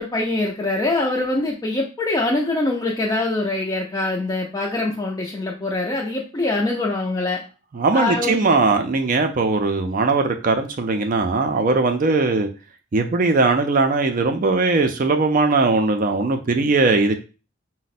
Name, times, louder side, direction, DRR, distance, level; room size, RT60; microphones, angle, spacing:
voice 1, 0.0-7.4 7.9-8.6, left 2 dB, 20° left, -3 dB, 0.4 m, -24 dB
voice 2, 7.7-12.5 12.9-17.2, right 3 dB, 40° right, 6 dB, 0.4 m, -19 dB
4.9 x 2.1 x 4.1 m, 0.34 s
head